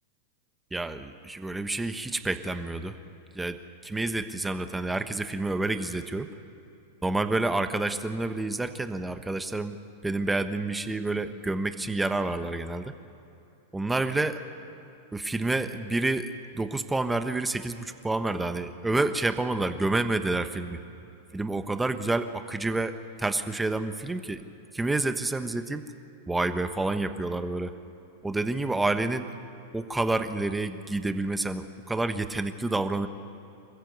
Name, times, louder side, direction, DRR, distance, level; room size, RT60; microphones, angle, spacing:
voice 1, 0.7-3.0 3.3-6.3 7.0-9.8 10.0-12.9 13.7-14.4 15.1-20.8 21.3-24.4 24.7-25.8 26.3-27.7 28.2-29.3 29.7-33.1, right 2 dB, 10° right, 9 dB, 1.2 m, -29 dB
26.5 x 15.0 x 8.1 m, 2.8 s
hypercardioid pair, 110°, 0 cm